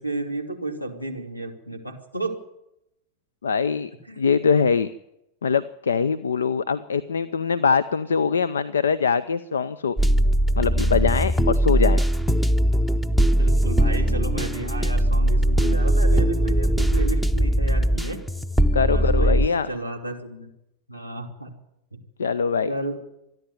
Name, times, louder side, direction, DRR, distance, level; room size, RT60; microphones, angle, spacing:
voice 1, 0.0-2.4 4.1-4.3 13.3-18.2 18.9-20.5 20.9-21.5 21.9-22.0 22.7-23.0, right 2 dB, 90° left, 6 dB, 2.9 m, -32 dB
voice 2, 3.4-3.9 4.2-4.9 5.4-10.0 10.6-12.0 18.7-19.7 22.2-22.7, left 6 dB, 70° left, 18 dB, 0.6 m, -22 dB
sound 1, 10.0-19.5, right 1 dB, 5° left, 0.8 m, -20 dB
26.0 x 10.5 x 9.4 m, 0.86 s
figure-of-eight pair, 90°, 0 cm